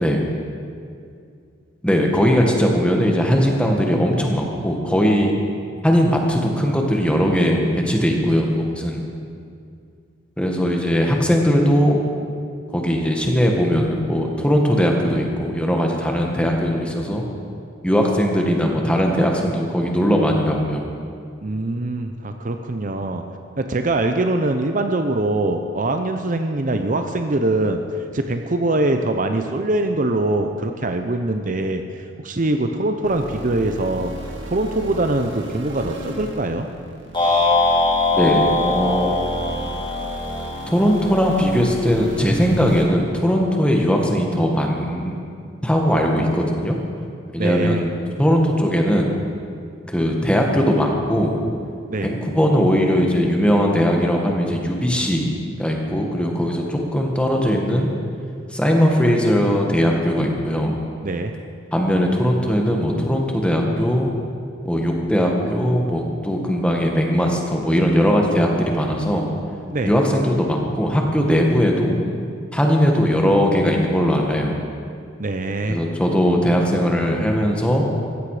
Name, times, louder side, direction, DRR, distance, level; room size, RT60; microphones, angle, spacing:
voice 1, 1.8-5.3 5.8-9.0 10.4-12.0 12.7-17.3 17.8-20.8 38.1-39.1 40.7-45.2 45.6-46.8 47.3-47.9 48.2-49.2 49.9-51.4 52.0-55.3 55.6-57.9 58.5-60.7 61.7-64.1 64.7-69.3 69.8-72.0 72.5-74.6 75.7-77.9, equal, 5° left, 1 dB, 1.7 m, -19 dB
voice 2, 21.4-23.2 23.6-27.8 28.1-31.8 32.2-36.7 47.4-47.8 51.9-52.1 61.0-61.3 69.7-69.9 75.2-75.8, right 2 dB, 45° right, 6 dB, 0.7 m, -23 dB
sound 1, 33.0-42.8, right 1 dB, 75° right, 2.5 m, -34 dB
sound 2, 37.1-41.5, left 2 dB, 25° left, 2.5 m, -21 dB
15.5 x 15.0 x 5.0 m, 2.3 s
head